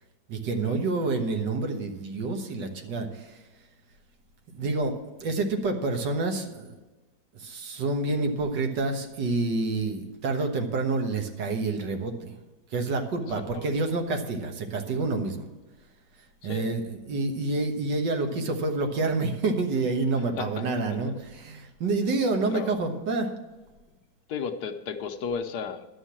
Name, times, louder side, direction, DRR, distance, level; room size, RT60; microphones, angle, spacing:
voice 1, 0.3-3.4 4.5-6.7 7.3-12.3 12.7-15.5 16.4-23.3, right 3 dB, 75° right, 4 dB, 1.9 m, -28 dB
voice 2, 13.4-13.8 16.4-16.7 20.1-21.1 22.4-22.7 24.3-25.9, left 6 dB, 70° left, 8 dB, 1.2 m, -35 dB
11.5 x 6.3 x 7.3 m, 1.2 s
omnidirectional pair, 1.9 m